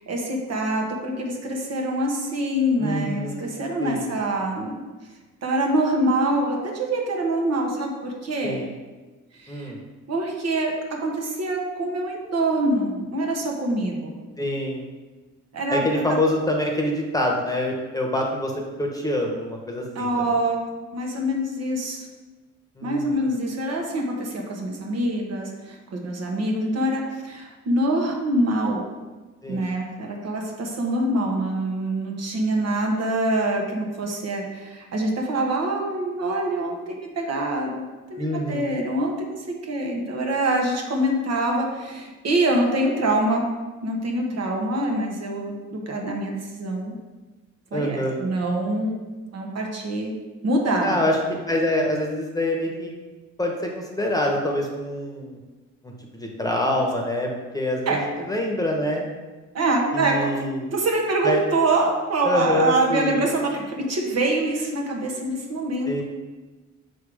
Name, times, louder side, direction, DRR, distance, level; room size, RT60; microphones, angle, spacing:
voice 1, 0.1-4.8 5.4-8.6 9.3-9.7 10.1-14.2 15.5-16.2 19.9-22.1 22.8-28.8 29.5-37.8 38.1-43.5 43.8-47.0 47.7-49.0 49.3-50.2 50.4-51.0 57.9-58.0 59.5-60.4 60.7-66.0, right 1 dB, 55° right, 0 dB, 1.3 m, -25 dB
voice 2, 2.8-3.5 3.8-4.1 8.4-8.7 9.5-9.8 14.4-14.9 15.7-18.5 18.8-20.1 22.8-23.3 29.4-29.6 38.2-38.8 47.7-48.2 50.8-52.9 53.4-55.4 55.8-59.0 59.9-60.6 61.2-61.4 62.2-63.3 65.9-66.0, left 1 dB, 10° left, 0 dB, 1.1 m, -25 dB
6.1 x 3.5 x 4.9 m, 1.2 s
cardioid pair, 90°, 30 cm